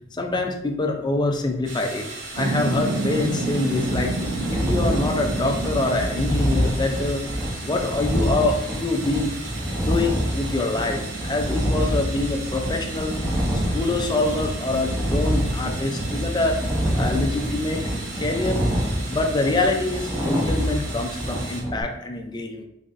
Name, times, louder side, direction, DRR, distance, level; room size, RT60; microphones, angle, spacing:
voice 1, 0.1-7.3 7.6-9.3 9.8-13.1 13.5-16.6 16.9-17.8 18.2-18.6 19.1-22.6, left 2 dB, 20° left, 3 dB, 0.4 m, -25 dB
sound 1, 1.6-21.6, right 3 dB, 65° right, 1.0 m, -37 dB
sound 2, 2.4-21.3, right 2 dB, 50° right, 0.4 m, -34 dB
sound 3, 3.7-21.8, equal, 5° right, 0.8 m, -27 dB
4.0 x 3.7 x 2.6 m, 0.80 s
head